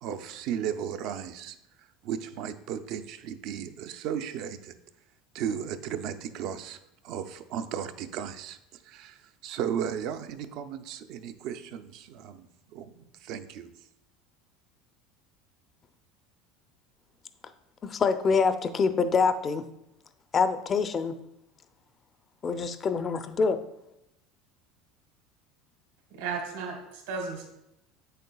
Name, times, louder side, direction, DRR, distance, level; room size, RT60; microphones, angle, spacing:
voice 1, 0.0-1.6 2.0-4.7 5.3-6.8 7.0-13.7, right 8 dB, 60° right, 0.5 m, -35 dB
voice 2, 17.8-19.6 20.3-21.1 22.4-23.6, left 5 dB, 30° left, 0.5 m, -25 dB
voice 3, 26.2-27.4, right 5 dB, 90° right, 1.7 m, -34 dB
8.0 x 6.6 x 2.3 m
supercardioid pair, 125°, 0 cm